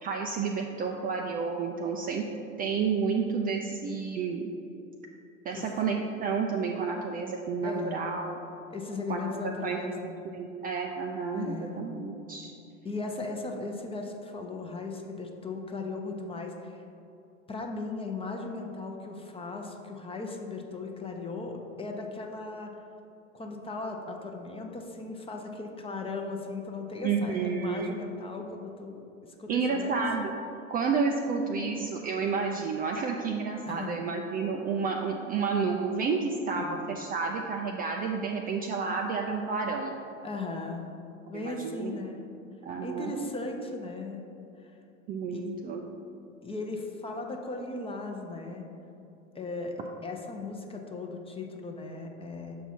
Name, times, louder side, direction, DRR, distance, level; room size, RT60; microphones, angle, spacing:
voice 1, 0.0-2.2 2.6-4.5 5.5-8.4 9.1-9.2 9.6-12.5 27.0-28.0 29.5-30.3 30.7-39.9 41.3-42.0 42.6-43.1 45.1-45.8, right 5 dB, 25° right, 2 dB, 0.4 m, -30 dB
voice 2, 7.6-8.2 8.7-10.1 11.3-11.8 12.8-16.8 17.5-22.7 23.3-30.0 33.6-34.1 36.5-36.8 40.2-40.9 41.3-42.2 42.8-44.2 44.6-44.7 45.3-45.7 46.4-48.7 49.3-52.5, left 3 dB, 15° left, 2 dB, 0.7 m, -37 dB
7.0 x 4.6 x 4.2 m, 2.7 s
hypercardioid pair, 85°, 38 cm